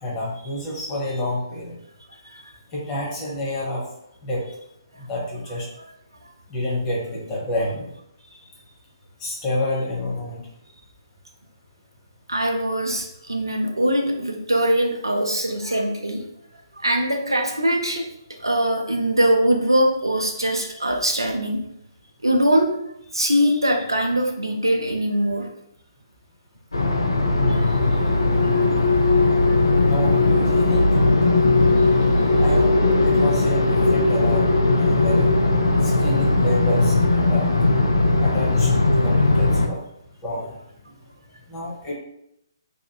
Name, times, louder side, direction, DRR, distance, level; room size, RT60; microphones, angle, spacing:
voice 1, 0.0-1.7 2.7-3.8 4.2-4.4 5.1-5.7 6.5-7.9 9.2-10.4 29.8-31.2 32.4-32.7 33.0-34.4 34.8-35.3 35.6-37.6 38.2-39.8 40.2-40.5 41.5-41.9, left 1 dB, 20° left, -5 dB, 0.8 m, -28 dB
voice 2, 12.3-16.2 16.8-18.1 18.4-21.6 22.2-25.5 28.4-28.6 29.2-29.5 31.7-31.8 32.3-32.4, right 1 dB, 80° right, 3 dB, 0.4 m, -22 dB
sound 1, 26.7-39.7, left 2 dB, 70° left, 0.4 m, -18 dB
2.8 x 2.4 x 2.2 m, 0.78 s
figure-of-eight pair, 135°, 2 cm